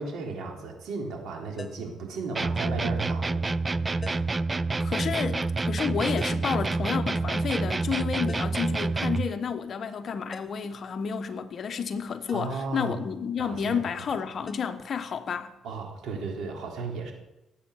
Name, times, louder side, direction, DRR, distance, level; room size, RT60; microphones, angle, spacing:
voice 1, 0.0-3.5 12.3-12.9 13.4-13.9 15.6-17.1, right 4 dB, 75° right, 3.4 m, -35 dB
sound 1, 1.6-2.0 4.0-4.4 6.2-6.5 8.3-8.7 10.3-10.7 12.3-12.6 14.5-14.6, left 5 dB, 30° left, 0.7 m, -43 dB
sound 2, 2.4-9.3, right 3 dB, 20° right, 0.4 m, -28 dB
voice 2, 4.8-15.5, left 6 dB, 45° left, 1.2 m, -31 dB
18.5 x 8.5 x 6.4 m
cardioid pair, 110°, 0 cm